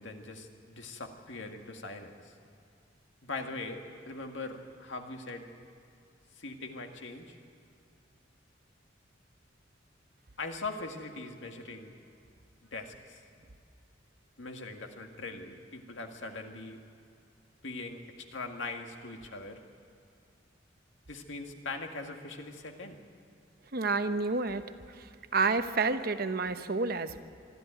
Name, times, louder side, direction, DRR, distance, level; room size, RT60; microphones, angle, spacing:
voice 1, 0.0-2.1 3.2-5.5 6.4-7.4 10.4-12.0 12.7-13.2 14.4-16.8 17.6-18.0 18.3-19.6 21.1-23.0, left 3 dB, 80° left, 4 dB, 2.0 m, -41 dB
voice 2, 23.7-24.6 25.3-27.2, right 4 dB, 50° right, 9 dB, 0.9 m, -29 dB
24.0 x 12.5 x 9.1 m, 2.5 s
head